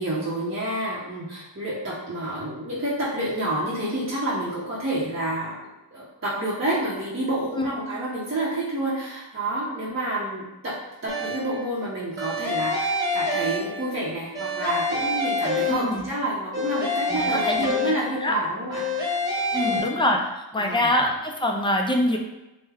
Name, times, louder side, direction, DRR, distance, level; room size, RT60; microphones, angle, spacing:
voice 1, 0.0-5.6 5.9-18.8 19.5-19.9 20.6-20.9, right 1 dB, 30° right, -8 dB, 0.7 m, -29 dB
sound 1, 11.1-11.6 12.2-14.0 14.3-16.1 16.5-18.3 18.7-19.8, left 2 dB, 10° right, 1.1 m, -27 dB
voice 2, 15.7-16.1 17.2-17.7 18.2-18.3 19.5-22.2, left 1 dB, 10° left, 2 dB, 0.4 m, -24 dB
3.4 x 2.1 x 3.3 m, 0.97 s
wide cardioid pair, 80°, 44 cm